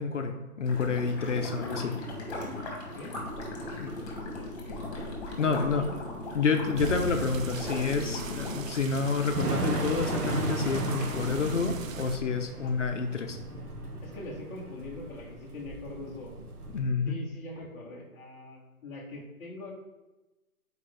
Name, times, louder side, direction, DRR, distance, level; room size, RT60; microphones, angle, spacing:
voice 1, 0.0-1.9 3.8-3.9 5.4-5.9 6.3-13.4 16.7-17.2, left 5 dB, 55° left, 4 dB, 0.7 m, -29 dB
sound 1, 0.6-11.5, left 2 dB, 25° left, 1.6 m, -38 dB
Thunder / Rain, 3.3-16.8, right 2 dB, 80° right, 1.5 m, -37 dB
voice 2, 3.6-4.8 5.7-5.9 12.6-12.7 14.0-16.3 17.1-19.7, left 2 dB, 10° left, -7 dB, 0.9 m, -43 dB
sound 2, 6.8-12.2, right 7 dB, 60° right, 0.5 m, -39 dB
7.5 x 4.6 x 3.3 m, 1.1 s
hypercardioid pair, 155°, 45 cm